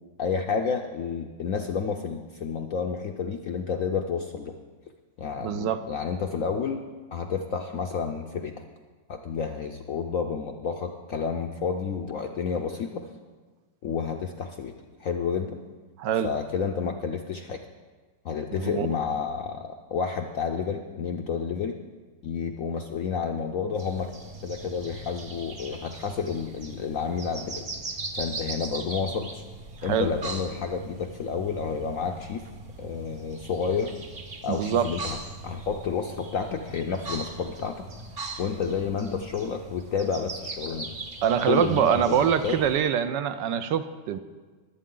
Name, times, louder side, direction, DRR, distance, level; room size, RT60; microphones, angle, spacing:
voice 1, 0.2-4.5 5.2-6.8 7.1-8.5 9.1-13.1 13.8-14.7 15.0-15.6 16.2-17.6 18.2-21.8 22.2-24.1 24.4-27.7 28.1-29.4 29.8-32.5 32.8-33.9 34.4-35.2 35.4-37.8 38.4-41.0 41.5-42.6, left 6 dB, 65° left, 4 dB, 0.8 m, -30 dB
voice 2, 5.4-5.8 16.0-16.3 18.6-18.9 29.8-30.1 34.5-34.9 41.2-44.2, right 9 dB, 75° right, 10 dB, 1.2 m, -24 dB
sound 1, 23.7-42.8, right 3 dB, 40° right, 1.0 m, -40 dB
22.0 x 8.4 x 3.8 m, 1.4 s
omnidirectional pair, 2.0 m